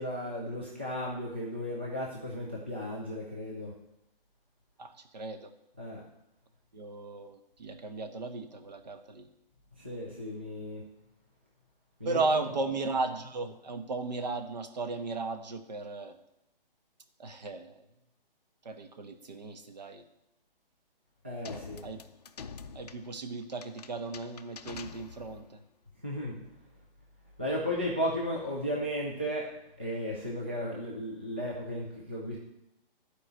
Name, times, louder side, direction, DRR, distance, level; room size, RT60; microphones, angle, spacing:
voice 1, 0.0-3.7 5.8-6.0 9.8-10.8 12.0-12.4 21.2-21.8 26.0-26.4 27.4-29.5 29.8-32.4, equal, 10° right, -3 dB, 0.4 m, -35 dB
voice 2, 4.8-5.5 6.7-9.3 12.0-16.1 17.2-17.8 18.6-20.0 21.8-22.0 22.7-25.6, right 3 dB, 45° right, 7 dB, 1.2 m, -35 dB
sound 1, 21.4-25.5, left 6 dB, 45° left, 0.6 m, -47 dB
12.0 x 4.9 x 7.7 m, 0.85 s
hypercardioid pair, 170°, 29 cm